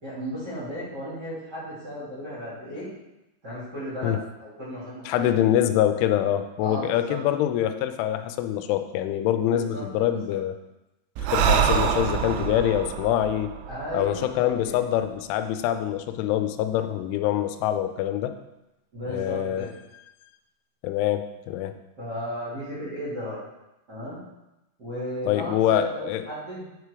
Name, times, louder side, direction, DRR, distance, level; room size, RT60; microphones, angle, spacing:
voice 1, 0.0-2.9 3.4-5.3 6.6-7.2 9.4-10.4 13.7-14.5 18.9-19.7 22.0-23.4 23.9-24.2 24.8-26.6, equal, 25° right, -11 dB, 2.8 m, -35 dB
voice 2, 5.1-10.6 11.2-13.5 13.9-18.3 19.1-19.7 20.8-21.8 25.3-26.3, left 11 dB, 90° left, 9 dB, 3.1 m, -25 dB
Breathing, 11.2-14.7, right 8 dB, 85° right, 2.3 m, -26 dB
10.0 x 4.9 x 4.8 m, 0.95 s
omnidirectional pair, 5.4 m